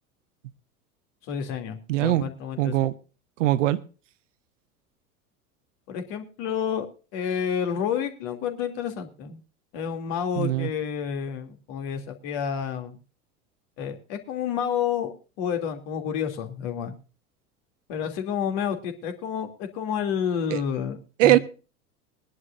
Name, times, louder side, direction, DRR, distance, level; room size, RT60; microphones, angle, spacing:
voice 1, 1.3-2.7 5.9-6.9 7.1-9.4 9.7-13.0 13.8-16.9 17.9-21.4, left 8 dB, 50° left, 2.8 m, -30 dB
voice 2, 1.9-2.2 2.6-2.9 3.4-3.8 10.4-10.7 20.5-20.6 21.2-21.4, right 15 dB, 55° right, 1.0 m, -21 dB
21.5 x 11.0 x 2.6 m
figure-of-eight pair, 80°, 45 cm